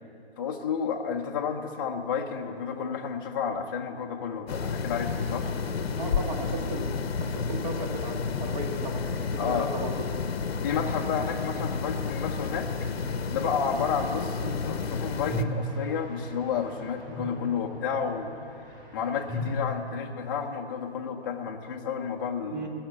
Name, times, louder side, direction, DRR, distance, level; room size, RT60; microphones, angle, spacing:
voice 1, 0.4-5.5 9.4-9.7 10.6-12.7 13.3-18.3 18.9-22.7, left 6 dB, 20° left, 1 dB, 0.6 m, -31 dB
sound 1, 4.5-15.4, left 5 dB, 65° left, 0.8 m, -31 dB
voice 2, 6.0-6.9 7.2-9.9 14.4-14.6 22.5-22.7, right 2 dB, 40° right, 3 dB, 1.7 m, -35 dB
sound 2, 14.8-19.5, equal, 25° right, 4.0 m, -39 dB
16.5 x 6.4 x 9.9 m, 2.6 s
hypercardioid pair, 145°, 33 cm